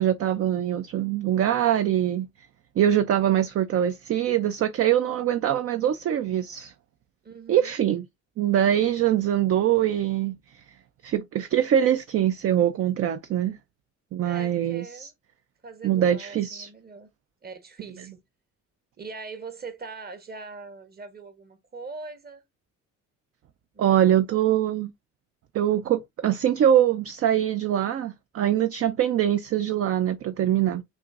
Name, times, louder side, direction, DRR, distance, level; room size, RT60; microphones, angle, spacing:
voice 1, 0.0-2.3 2.8-6.7 7.5-8.1 8.4-10.6 11.0-13.6 14.1-15.1 15.8-16.7 23.8-24.9 25.5-30.8, right 10 dB, 50° right, 0.5 m, -23 dB
voice 2, 7.2-7.8 14.2-15.1 15.6-17.1 17.4-18.2 19.0-22.4 23.7-24.4, right 4 dB, 30° right, 1.0 m, -41 dB
5.9 x 2.6 x 2.4 m
cardioid pair, 90°, 30 cm